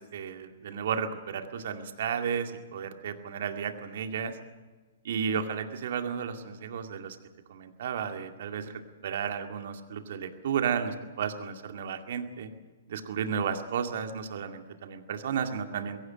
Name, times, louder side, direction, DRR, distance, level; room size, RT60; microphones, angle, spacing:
voice 1, 0.0-4.4 5.0-7.2 7.5-8.7 9.0-12.5 12.9-16.0, right 7 dB, 55° right, 6 dB, 2.2 m, -33 dB
22.0 x 17.5 x 7.5 m, 1.3 s
figure-of-eight pair, 115°, 0 cm